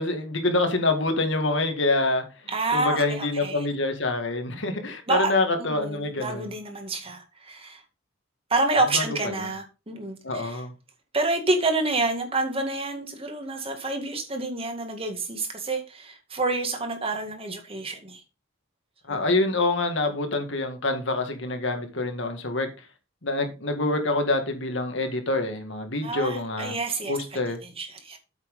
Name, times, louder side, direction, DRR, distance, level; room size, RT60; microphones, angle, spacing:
voice 1, 0.0-2.2 2.7-6.5 8.9-9.0 9.3-9.5 10.2-10.7 19.1-22.7 23.2-26.7 27.1-27.6, left 2 dB, 65° left, 1.9 m, -26 dB
voice 2, 2.5-3.7 5.1-5.3 5.6-7.8 8.5-10.6 11.1-18.2 19.1-19.3 26.0-28.2, right 2 dB, 30° right, 2.0 m, -28 dB
8.4 x 6.0 x 5.4 m
head